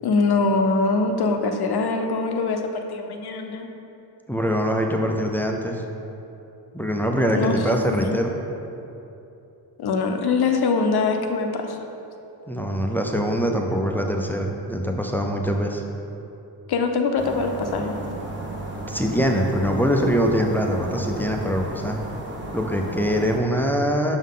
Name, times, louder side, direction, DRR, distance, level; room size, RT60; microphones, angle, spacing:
voice 1, 0.0-3.7 7.3-7.6 7.9-8.2 9.8-11.8 16.7-18.0, left 4 dB, 60° left, 5 dB, 0.7 m, -23 dB
voice 2, 4.3-5.8 6.7-8.4 12.5-15.8 18.9-22.0 22.5-24.2, equal, 5° left, 2 dB, 0.4 m, -23 dB
sound 1, 17.2-23.4, right 1 dB, 25° right, 1.0 m, -34 dB
6.1 x 5.6 x 3.7 m, 2.9 s
cardioid pair, 110°, 44 cm